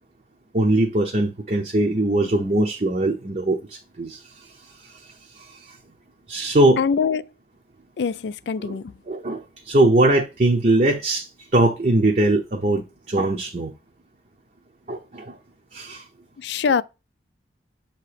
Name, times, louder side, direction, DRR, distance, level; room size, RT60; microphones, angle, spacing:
voice 1, 0.5-4.5 4.8-5.1 5.4-5.6 6.3-6.8 8.6-8.8 9.1-13.7 14.9-15.4 15.7-16.0, right 1 dB, 40° right, 0.7 m, -21 dB
voice 2, 6.8-7.3 8.0-9.0 16.4-16.8, left 6 dB, 75° left, 0.4 m, -23 dB
6.8 x 2.9 x 4.9 m
head